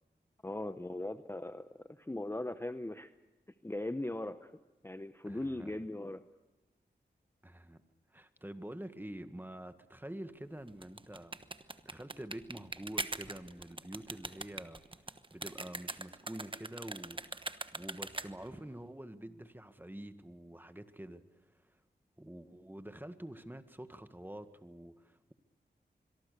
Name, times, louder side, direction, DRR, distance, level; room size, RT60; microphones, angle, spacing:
voice 1, 0.4-3.1 3.6-4.5 4.8-6.2, left 1 dB, 15° left, 10 dB, 1.0 m, -39 dB
voice 2, 5.2-5.8 7.4-7.8 8.1-11.4 11.8-14.8 15.3-21.2 21.6-21.8 22.2-25.3, right 1 dB, 10° right, 10 dB, 1.8 m, -47 dB
sound 1, 10.7-18.6, right 2 dB, 30° right, 1.2 m, -42 dB
25.5 x 22.5 x 6.9 m, 1.1 s
cardioid pair, 55°, 18 cm